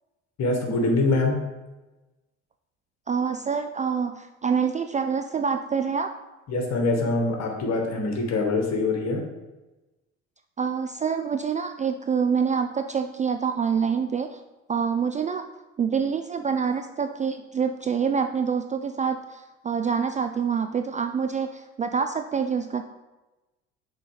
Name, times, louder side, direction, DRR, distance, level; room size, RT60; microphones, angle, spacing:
voice 1, 0.4-1.4 6.5-9.2, left 2 dB, 50° left, 2 dB, 1.8 m, -24 dB
voice 2, 3.1-6.1 10.6-14.4 14.7-15.4 15.8-22.8, right 6 dB, 20° right, 7 dB, 0.3 m, -26 dB
6.6 x 4.0 x 5.0 m, 1.1 s
hypercardioid pair, 65°, 35 cm